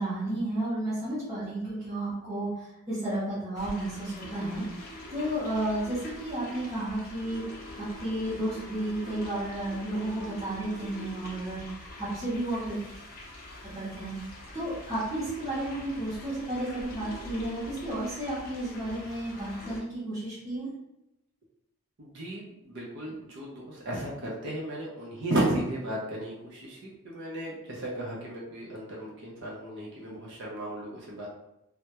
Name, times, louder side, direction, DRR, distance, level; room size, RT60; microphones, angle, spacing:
voice 1, 0.0-7.4 7.7-12.8 13.7-14.1 14.5-20.7, right 1 dB, 15° right, -12 dB, 0.7 m, -32 dB
sound 1, 3.5-19.8, left 1 dB, 40° left, 0.5 m, -44 dB
voice 2, 22.0-31.3, right 1 dB, 55° right, -4 dB, 0.5 m, -34 dB
2.2 x 2.1 x 2.8 m, 0.87 s
head